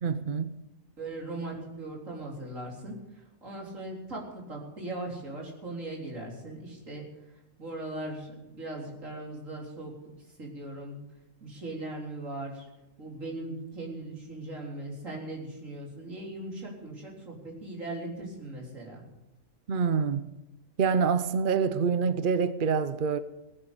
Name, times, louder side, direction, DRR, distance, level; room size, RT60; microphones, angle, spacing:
voice 1, 0.0-0.6 19.7-20.3 20.8-23.2, right 6 dB, 50° right, 0.8 m, -26 dB
voice 2, 1.0-7.0 7.6-9.9 10.4-11.0 11.4-12.7 13.0-19.0, right 2 dB, 80° right, 4.3 m, -39 dB
19.0 x 9.1 x 8.2 m
omnidirectional pair, 1.3 m